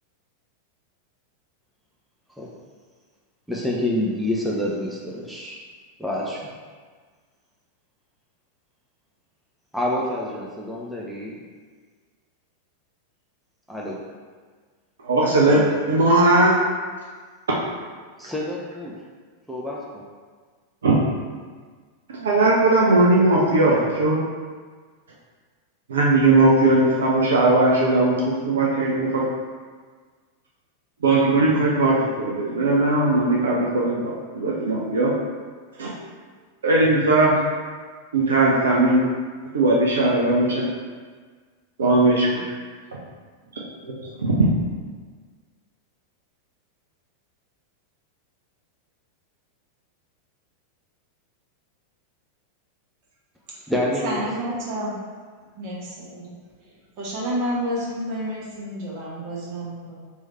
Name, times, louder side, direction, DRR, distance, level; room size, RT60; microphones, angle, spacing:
voice 1, 3.5-5.6 6.0-6.4 9.7-11.4 13.7-13.9 15.5-15.8 18.2-18.9 19.5-20.0 53.7-54.2, left 1 dB, ahead, -5 dB, 0.5 m, -27 dB
voice 2, 15.0-15.6 15.9-16.6 20.8-20.9 22.1-24.2 25.9-29.2 31.0-35.1 35.8-35.9 36.6-37.4 38.1-39.0 39.5-40.7 41.8-42.4 43.8-43.9 44.2-44.3, right 2 dB, 65° right, -4 dB, 0.5 m, -18 dB
voice 3, 54.0-55.0 55.6-56.4 57.0-60.0, equal, 45° right, -6 dB, 1.1 m, -29 dB
3.1 x 2.7 x 3.3 m, 1.5 s
figure-of-eight pair, 90°, 0 cm